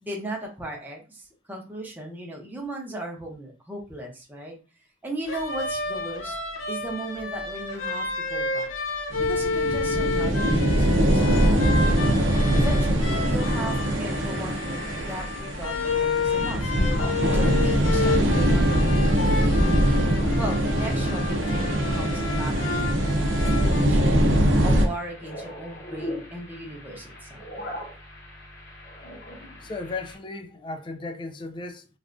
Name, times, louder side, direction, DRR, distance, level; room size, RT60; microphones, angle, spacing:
voice 1, 0.0-4.5 5.0-6.3 6.7-8.7 9.2-12.0 12.5-16.6 17.3-19.7 20.4-23.1 23.4-24.2 24.6-27.4, right 1 dB, 10° right, 0.7 m, -37 dB
sound 1, 5.3-23.8, left 4 dB, 85° left, 0.5 m, -30 dB
sound 2, 9.1-24.9, right 1 dB, 80° right, 0.6 m, -22 dB
sound 3, 14.5-30.2, left 1 dB, 60° left, 1.0 m, -42 dB
voice 2, 29.6-31.9, left 3 dB, 25° left, 0.3 m, -35 dB
3.3 x 2.4 x 2.5 m
head